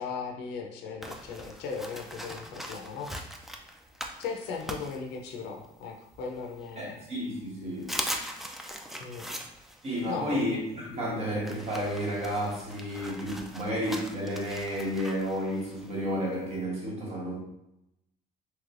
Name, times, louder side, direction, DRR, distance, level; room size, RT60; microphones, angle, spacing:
voice 1, 0.0-3.3 4.2-7.1 9.0-9.3 10.1-10.4, left 5 dB, 90° left, 2 dB, 0.5 m, -37 dB
sound 1, 1.0-5.7 6.1-7.0 7.4-7.5 7.8-16.6, equal, ahead, 0.3 m, -41 dB
voice 2, 6.8-8.0 9.8-17.4, equal, 40° right, -3 dB, 1.1 m, -31 dB
3.2 x 3.0 x 2.4 m, 0.84 s
cardioid pair, 110°, 17 cm